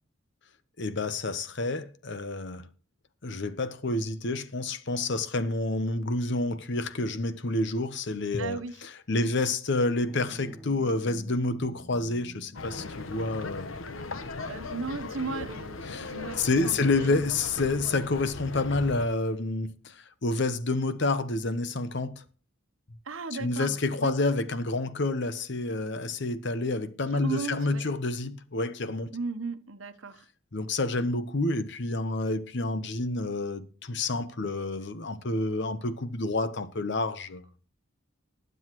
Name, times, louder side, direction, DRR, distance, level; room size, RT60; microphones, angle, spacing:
voice 1, 0.8-2.7 3.2-13.7 15.3-15.5 15.9-22.2 23.3-29.2 30.5-37.5, left 2 dB, 60° left, 0.9 m, -29 dB
voice 2, 8.4-8.8 9.2-9.3 14.5-17.3 23.0-24.1 27.1-27.8 29.1-30.2, right 4 dB, 80° right, 1.0 m, -36 dB
sound 1, 10.0-15.8, left 1 dB, ahead, 4.3 m, -50 dB
sound 2, 12.5-19.1, left 3 dB, 85° left, 1.0 m, -38 dB
20.0 x 8.0 x 3.1 m
head